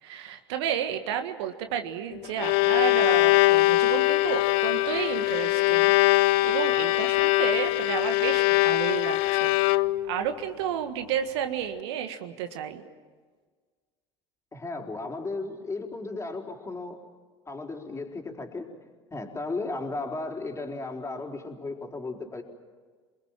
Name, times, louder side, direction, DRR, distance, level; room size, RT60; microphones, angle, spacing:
voice 1, 0.0-9.5 10.1-12.8, right 9 dB, 70° right, 7 dB, 1.7 m, -32 dB
Bowed string instrument, 2.1-10.2, left 20 dB, 60° left, 0.7 m, -22 dB
voice 2, 14.5-17.0 17.5-18.7 19.1-22.4, left 3 dB, 20° left, 2 dB, 4.3 m, -35 dB
29.0 x 21.0 x 7.5 m, 1.5 s
hypercardioid pair, 70°, 14 cm